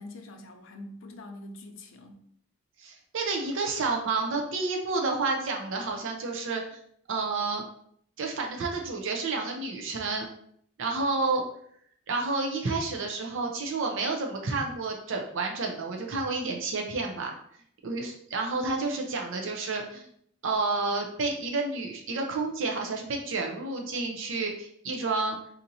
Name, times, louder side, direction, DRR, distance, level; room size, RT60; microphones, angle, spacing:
voice 1, 0.0-2.2, left 1 dB, 65° left, 3 dB, 0.5 m, -44 dB
voice 2, 2.8-6.8 7.1-7.6 8.2-10.3 10.8-11.4 12.1-17.3 17.8-20.0 20.4-25.4, right 3 dB, 65° right, 2 dB, 0.5 m, -30 dB
4.2 x 2.6 x 2.6 m, 0.67 s
head